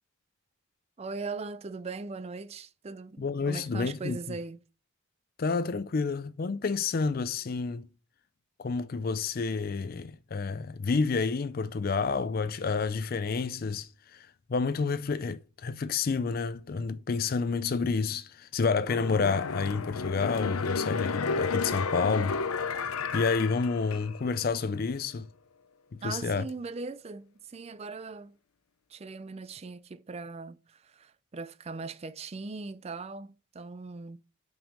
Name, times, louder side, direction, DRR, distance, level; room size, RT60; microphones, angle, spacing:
voice 1, 1.0-4.6 26.0-28.4 28.9-34.2, right 4 dB, 30° right, 0.4 m, -40 dB
voice 2, 3.2-4.2 5.4-7.9 8.6-22.6 23.1-25.3 26.0-26.4, left 4 dB, 45° left, 0.4 m, -29 dB
sound 1, 18.8-24.4 24.8-24.9, left 5 dB, 90° left, 0.6 m, -32 dB
5.8 x 5.3 x 5.3 m
head